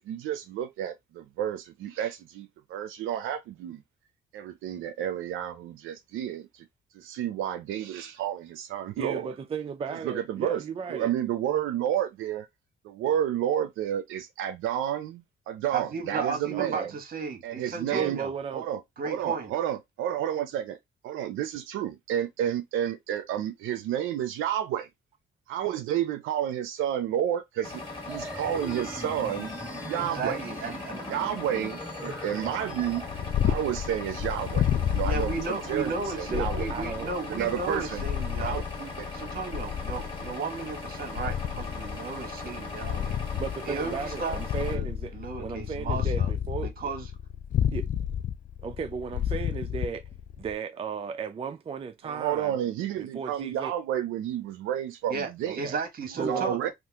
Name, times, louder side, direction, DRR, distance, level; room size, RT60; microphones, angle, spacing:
voice 1, 0.0-3.8 4.3-6.7 6.9-9.3 10.0-10.6 10.9-12.5 12.8-16.9 17.4-18.2 18.5-20.8 21.0-24.9 25.5-29.5 29.8-30.4 31.1-33.0 33.4-35.9 36.2-36.7 37.3-38.0 38.4-38.6 39.0-39.2 52.0-55.6 56.3-56.7, right 10 dB, 85° right, 0.5 m, -31 dB
voice 2, 9.0-11.1 16.5-16.9 17.9-18.7 32.3-32.6 36.3-37.1 37.7-37.8 43.3-45.1 45.4-46.9 47.7-47.9 48.6-50.0 50.4-52.6 53.0-53.7 55.4-55.8 56.2-56.7, right 6 dB, 30° right, 0.4 m, -35 dB
voice 3, 15.7-18.3 19.0-19.5 30.0-31.0 35.0-43.2 43.6-44.4 44.7-44.8 45.1-46.3 46.6-47.1 55.1-56.7, right 4 dB, 50° right, 1.2 m, -34 dB
sound 1, 27.6-44.8, left 3 dB, 25° left, 1.6 m, -39 dB
sound 2, 28.1-33.1, equal, 5° right, 0.8 m, -41 dB
Purr, 32.8-50.5, left 9 dB, 40° left, 0.4 m, -31 dB
2.8 x 2.5 x 3.4 m
cardioid pair, 90°, 20 cm